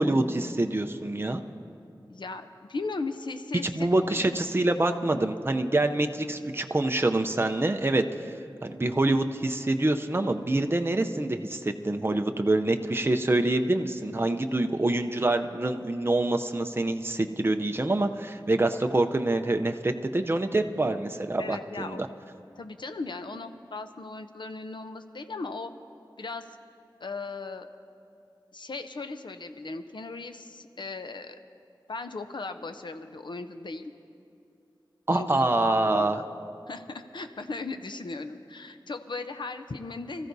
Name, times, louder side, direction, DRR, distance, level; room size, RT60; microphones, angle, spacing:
voice 1, 0.0-1.4 3.7-8.3 8.6-22.1 35.1-36.2, right 2 dB, 30° right, 6 dB, 0.6 m, -26 dB
voice 2, 2.1-4.3 21.4-22.0 22.5-25.7 26.2-26.4 27.0-27.7 28.5-31.4 31.9-33.9 35.1-36.3 36.7-40.3, left 3 dB, 70° left, 8 dB, 0.6 m, -37 dB
24.5 x 14.0 x 2.7 m, 2.5 s
wide cardioid pair, 65°, 8 cm